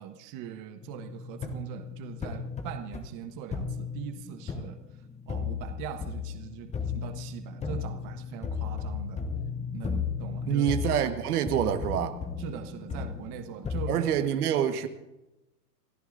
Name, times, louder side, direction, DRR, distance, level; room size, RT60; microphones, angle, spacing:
voice 1, 0.0-4.8 5.3-9.2 9.7-10.6 12.4-14.1, right 10 dB, 40° right, 7 dB, 1.4 m, -41 dB
sound 1, 0.8-14.0, left 6 dB, 15° left, 1.2 m, -35 dB
voice 2, 10.5-12.1 13.9-14.9, right 9 dB, 70° right, 7 dB, 1.6 m, -26 dB
29.0 x 14.0 x 2.6 m, 0.95 s
hypercardioid pair, 120°, 47 cm